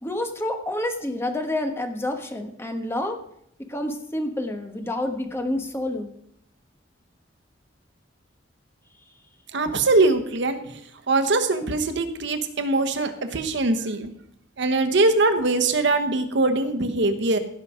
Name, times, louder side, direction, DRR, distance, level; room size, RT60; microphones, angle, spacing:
voice 1, 0.0-3.2 3.7-6.1, left 1 dB, 15° left, 5 dB, 1.2 m, -28 dB
voice 2, 9.5-10.8 11.1-14.1 14.6-17.4, right 2 dB, 65° right, 7 dB, 1.1 m, -22 dB
16.5 x 5.7 x 4.9 m, 0.72 s
head